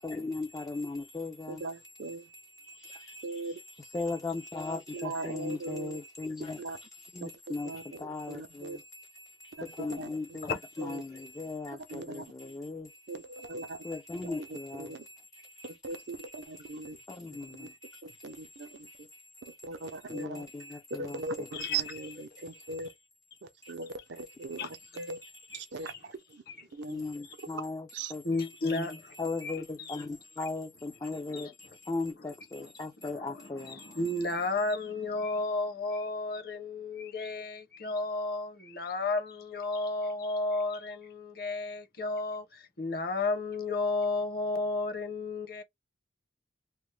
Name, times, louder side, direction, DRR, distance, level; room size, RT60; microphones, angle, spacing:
voice 1, 0.0-10.5 10.8-15.2 15.4-22.1 22.4-22.9 23.6-23.7 24.9-25.6 26.9-28.2 28.7-28.8 29.1-34.2, left 3 dB, 20° left, 0.3 m, -39 dB
voice 2, 1.5-2.2 3.2-3.6 4.9-6.0 6.6-6.8 7.2-7.3 7.6-8.8 9.6-10.4 10.8-11.0 11.9-12.3 13.1-13.8 14.2-15.0 15.8-17.0 17.6-17.7 18.0-18.9 19.6-20.4 20.9-22.9 23.4-24.6 25.0-25.2 25.5-26.4 26.7-27.0 27.9-28.1, right 3 dB, 70° right, 0.5 m, -39 dB
voice 3, 21.5-22.0 22.4-22.5 24.6-24.7 25.5-25.6 25.9-26.0 26.5-26.7 27.2-27.4 28.2-29.1 29.4-30.1 31.0-31.8 32.6-32.7 33.0-45.6, left 3 dB, 55° left, 0.9 m, -33 dB
2.9 x 2.1 x 3.1 m
head